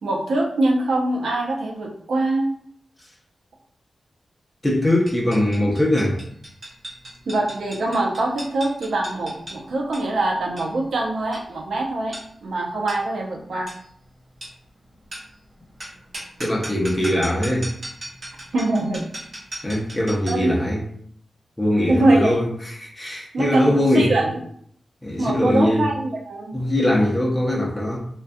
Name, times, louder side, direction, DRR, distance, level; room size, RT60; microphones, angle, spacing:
voice 1, 0.0-2.4 7.3-13.7 18.5-19.1 20.3-20.5 21.9-22.4 23.3-24.3 25.2-26.6, right 2 dB, 85° right, -1 dB, 0.5 m, -23 dB
voice 2, 4.6-6.2 16.4-17.7 19.6-20.9 21.6-24.1 25.0-25.9 26.5-28.0, left 1 dB, 10° left, -3 dB, 0.5 m, -21 dB
sound 1, 5.1-20.5, right 1 dB, 50° right, 1.1 m, -39 dB
2.3 x 2.2 x 2.6 m, 0.64 s
wide cardioid pair, 125°, 0 cm